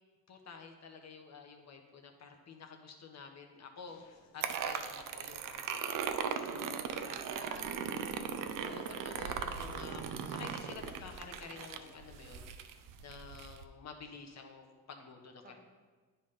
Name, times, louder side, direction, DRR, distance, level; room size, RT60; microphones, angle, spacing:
voice 1, 0.3-6.0 6.3-6.7 7.3-7.6 8.6-12.5 13.0-15.6, left 5 dB, 50° left, 3 dB, 1.2 m, -50 dB
Conversation, 3.8-12.3, left 4 dB, 90° left, 1.0 m, -61 dB
sound 1, 4.4-13.6, right 7 dB, 70° right, 0.6 m, -38 dB
voice 2, 6.4-8.4 15.4-15.6, right 2 dB, 25° right, 1 dB, 1.4 m, -54 dB
9.8 x 3.4 x 5.6 m, 1.4 s
cardioid pair, 70°, 34 cm